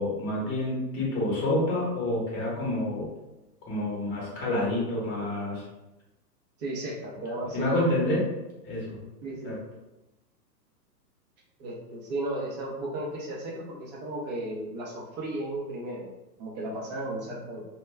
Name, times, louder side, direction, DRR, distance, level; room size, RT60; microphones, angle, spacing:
voice 1, 0.0-3.1 3.7-5.6 7.5-8.2 8.6-9.0 9.4-9.6, left 1 dB, 25° left, -4 dB, 0.9 m, -28 dB
voice 2, 6.6-7.7 9.2-9.6 11.6-16.1 16.4-17.7, right 1 dB, 25° right, -2 dB, 0.5 m, -34 dB
2.2 x 2.1 x 3.3 m, 0.98 s
hypercardioid pair, 125°, 50 cm